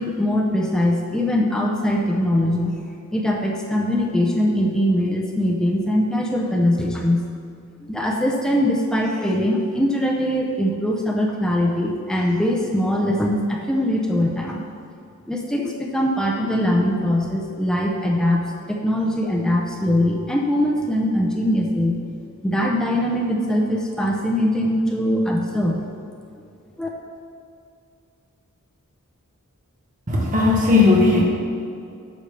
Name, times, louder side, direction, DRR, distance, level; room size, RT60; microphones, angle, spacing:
voice 1, 0.0-2.7 3.1-7.2 7.9-14.6 15.3-18.4 18.7-22.0 22.4-25.8 26.8-26.9, left 1 dB, 5° left, -2 dB, 0.7 m, -21 dB
voice 2, 30.1-31.2, left 3 dB, 35° right, -3 dB, 1.2 m, -16 dB
11.5 x 7.2 x 3.4 m, 2.5 s
head